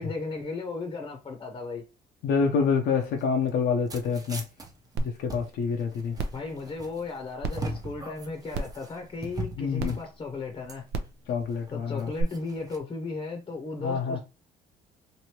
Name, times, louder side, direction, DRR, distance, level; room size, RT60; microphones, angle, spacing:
voice 1, 0.0-1.8 6.3-10.8 11.7-14.2, left 3 dB, 30° left, 0.8 m, -35 dB
voice 2, 2.2-4.4 5.0-6.2 9.6-10.0 11.3-12.1 13.8-14.2, left 5 dB, 80° left, 0.7 m, -27 dB
sound 1, 2.9-12.8, right 1 dB, 20° right, 0.7 m, -41 dB
sound 2, 5.0-5.1 5.5-5.6 6.1-6.4 7.4-7.5 8.5-8.8 9.8-9.9 10.9-11.1 12.2-12.3, right 2 dB, 75° right, 0.6 m, -30 dB
3.1 x 2.6 x 2.9 m
cardioid pair, 110°, 17 cm